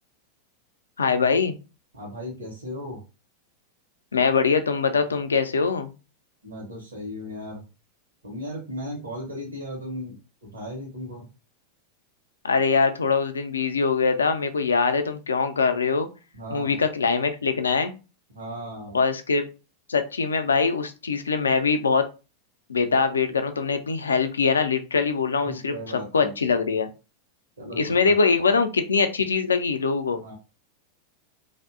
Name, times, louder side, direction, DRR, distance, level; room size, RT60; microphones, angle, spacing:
voice 1, 1.0-1.6 4.1-5.9 12.4-16.1 16.5-17.9 18.9-19.4 19.9-22.1 22.7-26.9 27.8-30.3, left 5 dB, 70° left, 9 dB, 0.3 m, -23 dB
voice 2, 1.9-3.0 6.4-7.6 8.2-11.3 16.3-16.8 18.3-19.0 25.4-26.5 27.6-28.1 30.1-30.3, equal, 70° right, -2 dB, 0.7 m, -36 dB
2.5 x 2.0 x 2.4 m, 0.31 s
figure-of-eight pair, 90°, 0 cm